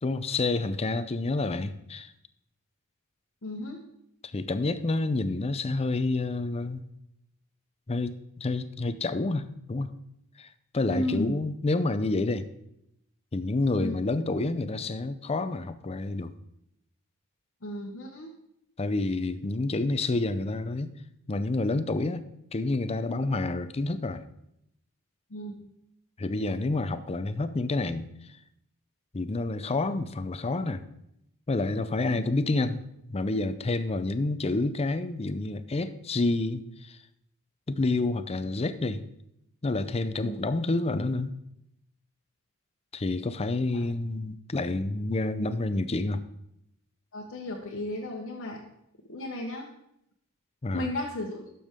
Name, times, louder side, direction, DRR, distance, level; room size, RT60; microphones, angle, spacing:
voice 1, 0.0-2.1 4.2-6.8 7.9-9.9 10.4-10.5 10.7-12.5 13.3-16.3 18.8-20.9 21.3-22.2 22.5-24.2 26.2-28.1 29.1-30.8 31.5-32.8 33.1-37.0 37.7-39.1 39.6-41.3 42.9-46.2 50.6-50.9, left 2 dB, 30° left, 12 dB, 0.5 m, -28 dB
voice 2, 3.4-3.8 10.9-11.4 13.8-14.0 17.6-18.3 25.3-25.6 32.1-32.2 40.2-40.4 43.7-43.9 47.1-48.6 49.1-49.7 50.7-51.4, left 1 dB, 60° left, -1 dB, 1.1 m, -34 dB
11.5 x 6.9 x 3.7 m, 0.79 s
head